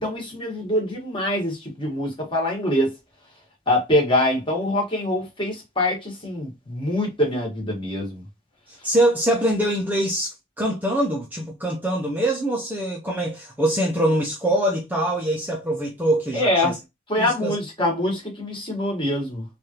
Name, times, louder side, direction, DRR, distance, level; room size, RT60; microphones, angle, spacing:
voice 1, 0.0-2.9 3.7-8.2 16.3-16.8 17.1-19.4, left 1 dB, 25° left, 1.2 m, -24 dB
voice 2, 8.8-16.8 17.2-17.6, right 1 dB, 10° right, 0.5 m, -23 dB
3.3 x 2.4 x 2.7 m
head